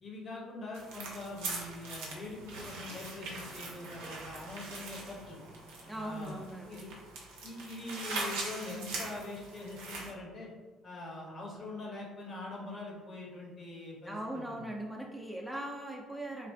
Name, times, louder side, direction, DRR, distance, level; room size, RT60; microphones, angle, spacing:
voice 1, 0.0-5.4 6.0-6.4 6.7-6.9 7.4-10.5 10.8-14.7, left 2 dB, 45° left, -2 dB, 0.7 m, -43 dB
sound 1, 0.7-10.1, right 3 dB, 75° right, 0.4 m, -42 dB
voice 2, 5.9-6.8 14.0-16.5, right 1 dB, 5° right, -1 dB, 0.3 m, -40 dB
2.5 x 2.4 x 2.2 m, 1.4 s
hypercardioid pair, 50°, 0 cm